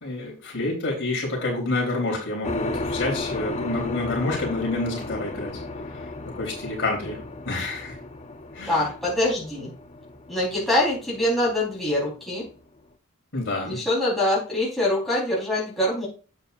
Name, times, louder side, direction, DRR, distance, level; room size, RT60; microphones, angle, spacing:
voice 1, 0.0-5.6 5.9-6.0 6.4-7.2 7.5-8.0 8.5-8.9 13.3-13.8, left 2 dB, 55° left, -1 dB, 3.7 m, -28 dB
sound 1, 2.4-12.6, left 2 dB, 30° left, 0.7 m, -34 dB
voice 2, 8.7-9.7 10.3-12.4 13.6-16.1, left 1 dB, ahead, -7 dB, 4.2 m, -24 dB
9.1 x 8.7 x 2.6 m, 0.36 s
head